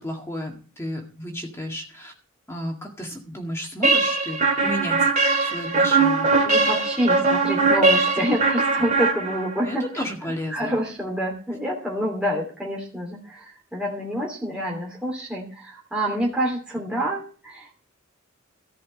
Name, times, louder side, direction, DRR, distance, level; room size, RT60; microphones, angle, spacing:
voice 1, 0.0-2.1 2.5-5.1 5.4-6.3 9.6-10.8, equal, 15° left, 0 dB, 2.0 m, -32 dB
sound 1, 3.8-9.7, right 3 dB, 35° right, 2.5 m, -21 dB
voice 2, 6.4-9.8 10.5-17.7, equal, 5° right, -3 dB, 2.9 m, -27 dB
14.0 x 6.2 x 7.6 m, 0.39 s
head